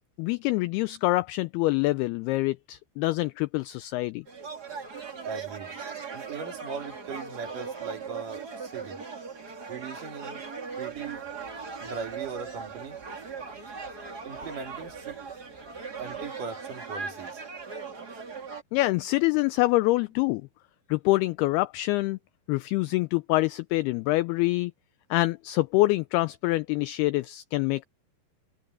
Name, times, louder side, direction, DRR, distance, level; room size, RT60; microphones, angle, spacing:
voice 1, 0.2-4.2 18.7-20.4 20.9-22.2 22.5-24.7 25.1-27.8, left 19 dB, 90° left, 2.2 m, -25 dB
sound 1, 4.3-18.6, right 5 dB, 30° right, 2.2 m, -39 dB
voice 2, 5.2-5.7 6.1-9.0 9.7-10.5 10.8-11.3 11.8-13.0 14.2-15.2 16.0-17.4, right 5 dB, 50° right, 4.3 m, -39 dB
sound 2, 10.9-16.3, right 4 dB, 80° right, 9.2 m, -58 dB
omnidirectional pair, 5.1 m